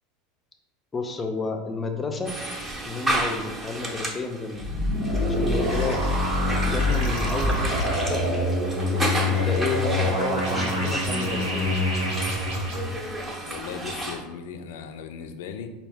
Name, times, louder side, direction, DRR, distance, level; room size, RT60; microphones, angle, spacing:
voice 1, 0.9-2.4 2.8-4.7 5.2-6.0 6.7-8.3 8.9-11.8, left 3 dB, 20° left, 4 dB, 0.5 m, -31 dB
sound 1, 2.2-14.2, right 1 dB, 15° right, 0.7 m, -32 dB
sound 2, 4.6-12.8, left 1 dB, 75° right, 1.2 m, -25 dB
voice 2, 5.7-6.0 13.4-15.7, left 7 dB, 80° left, 8 dB, 0.4 m, -37 dB
4.4 x 2.3 x 3.4 m, 1.1 s
supercardioid pair, 120°, 0 cm